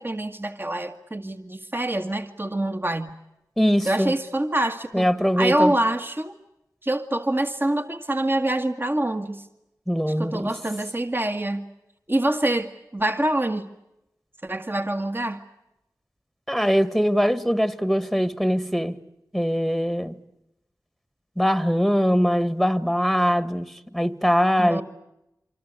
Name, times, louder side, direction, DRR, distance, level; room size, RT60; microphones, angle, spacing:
voice 1, 0.0-3.1 3.9-5.1 5.4-6.3 6.8-9.5 10.1-11.7 12.1-13.7 14.4-15.4 24.6-24.8, right 1 dB, 30° right, 1.8 m, -25 dB
voice 2, 3.6-4.1 4.9-5.7 9.9-10.5 16.5-19.0 19.3-20.2 21.4-24.8, equal, ahead, 1.6 m, -22 dB
26.5 x 25.5 x 8.1 m
wide cardioid pair, 50°, 7 cm